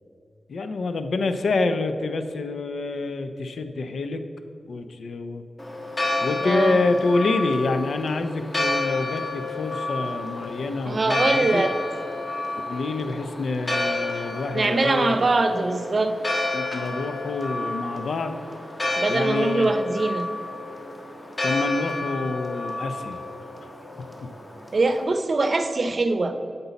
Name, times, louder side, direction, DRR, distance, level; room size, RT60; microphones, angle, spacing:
voice 1, 0.5-4.2 4.7-5.4 6.2-11.6 12.7-15.3 16.5-18.4 19.1-19.7 21.4-23.2, left 3 dB, 85° left, 9 dB, 0.5 m, -27 dB
Church bell, 5.6-25.0, left 2 dB, 25° left, 1.3 m, -30 dB
voice 2, 6.4-6.8 10.8-11.7 14.5-16.2 19.0-20.3 24.7-26.4, right 3 dB, 45° right, 8 dB, 0.6 m, -22 dB
8.1 x 5.3 x 7.0 m, 2.5 s
wide cardioid pair, 110°, 0 cm